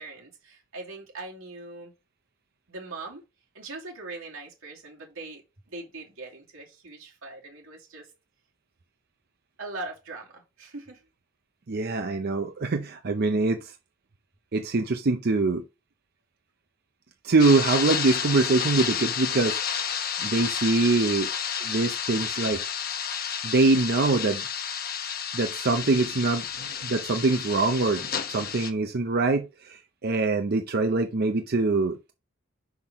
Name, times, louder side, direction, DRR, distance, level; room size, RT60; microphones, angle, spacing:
voice 1, 0.0-1.9 2.7-3.2 3.5-5.4 5.7-8.1 9.6-11.0, right 2 dB, 85° right, 2.6 m, -41 dB
voice 2, 11.7-13.7 14.5-15.6 17.2-19.9 20.2-21.3 21.6-22.6 23.4-24.4 25.3-32.1, right 3 dB, 50° right, 0.6 m, -24 dB
sound 1, 17.4-28.7, left 8 dB, 45° left, 1.0 m, -31 dB
6.0 x 5.8 x 3.6 m
head